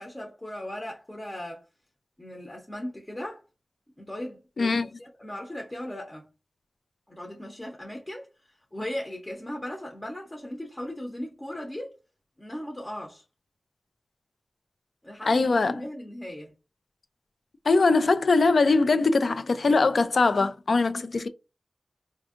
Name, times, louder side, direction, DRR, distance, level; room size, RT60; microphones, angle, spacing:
voice 1, 0.0-1.6 2.2-3.4 4.0-6.3 7.1-12.0 12.4-13.2 15.0-16.5, left 1 dB, 20° left, 0.7 m, -38 dB
voice 2, 4.6-4.9 15.3-15.8 17.7-21.3, left 3 dB, 80° left, 0.4 m, -22 dB
4.3 x 2.6 x 2.4 m
wide cardioid pair, 80°, 0 cm